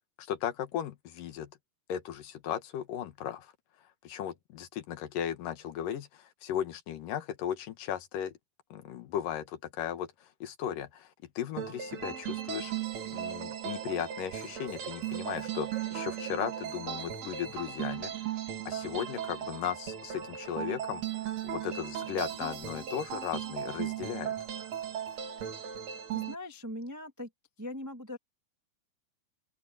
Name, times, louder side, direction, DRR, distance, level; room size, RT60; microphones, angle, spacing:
voice 1, 0.2-1.5 1.9-3.5 4.0-8.3 8.7-11.1 11.4-12.7 13.1-18.4 18.7-21.0 21.4-24.3, left 10 dB, 80° left, 3.1 m, -36 dB
sound 1, 11.6-26.3, right 10 dB, 55° right, 3.4 m, -37 dB
sound 2, 11.9-18.6, right 9 dB, 80° right, 3.8 m, -48 dB
voice 2, 26.1-27.3 27.6-28.2, left 1 dB, 20° right, 0.4 m, -41 dB
open air
omnidirectional pair, 3.8 m